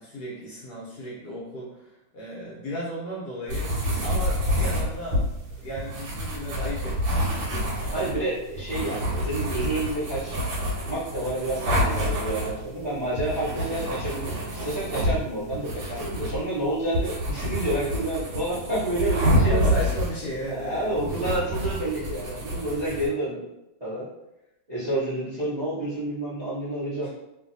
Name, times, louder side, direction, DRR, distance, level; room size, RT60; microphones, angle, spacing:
voice 1, 0.0-1.9 2.1-3.7 4.0-5.2 5.6-8.0 19.4-20.9 27.0-27.1, right 1 dB, 70° left, -5 dB, 1.0 m, -35 dB
sound 1, 3.5-23.1, equal, 75° right, 1.4 m, -28 dB
voice 2, 7.9-10.4 10.8-19.9 20.5-23.4 23.8-24.1 24.7-27.1, right 1 dB, 40° right, -11 dB, 0.6 m, -29 dB
3.1 x 2.5 x 2.5 m, 0.90 s
omnidirectional pair, 2.3 m